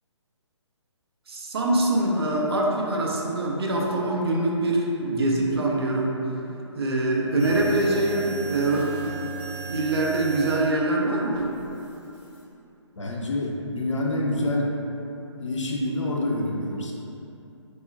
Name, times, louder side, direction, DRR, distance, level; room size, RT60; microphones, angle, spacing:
voice 1, 1.3-6.2 6.7-8.9 9.3-11.5, right 2 dB, 55° right, -2 dB, 0.5 m, -24 dB
sound 1, 7.4-10.6 11.3-12.4, right 4 dB, 5° right, 0.6 m, -36 dB
voice 2, 13.0-14.8 15.4-16.9, left 1 dB, 75° left, -2 dB, 0.5 m, -27 dB
3.6 x 2.0 x 2.5 m, 2.9 s
figure-of-eight pair, 135°, 16 cm